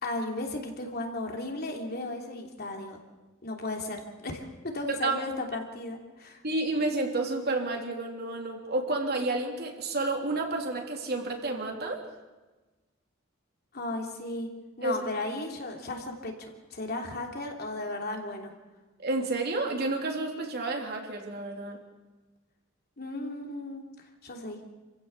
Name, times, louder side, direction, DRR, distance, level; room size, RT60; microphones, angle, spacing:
voice 1, 0.0-3.0 3.4-6.4 13.7-14.5 14.8-18.5 23.0-23.8 24.2-24.6, left 2 dB, 50° left, 2 dB, 3.0 m, -35 dB
voice 2, 6.4-12.0 14.8-15.0 19.0-21.8, right 2 dB, 50° right, 2 dB, 3.4 m, -30 dB
28.0 x 15.5 x 7.0 m, 1.2 s
head